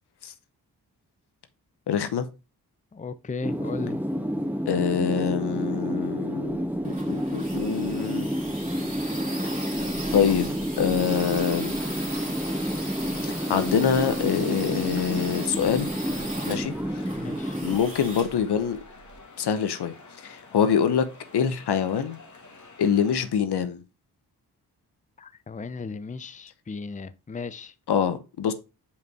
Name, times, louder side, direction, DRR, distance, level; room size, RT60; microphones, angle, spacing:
voice 1, 1.9-2.3 4.7-8.3 9.5-9.7 10.1-11.8 13.2-15.9 16.5-16.7 17.6-18.8 19.4-21.0 21.3-22.2 22.8-23.8 27.9-28.5, left 7 dB, 75° left, 0.9 m, -25 dB
voice 2, 2.9-4.0 17.2-17.6 25.2-27.7, left 4 dB, 20° left, 0.6 m, -36 dB
sound 1, 3.4-17.8, equal, 5° right, 1.7 m, -30 dB
sound 2, 6.5-19.2, right 1 dB, 20° right, 2.4 m, -38 dB
sound 3, 11.7-23.3, left 3 dB, 45° left, 2.0 m, -47 dB
5.2 x 5.2 x 4.7 m
cardioid pair, 55°, 40 cm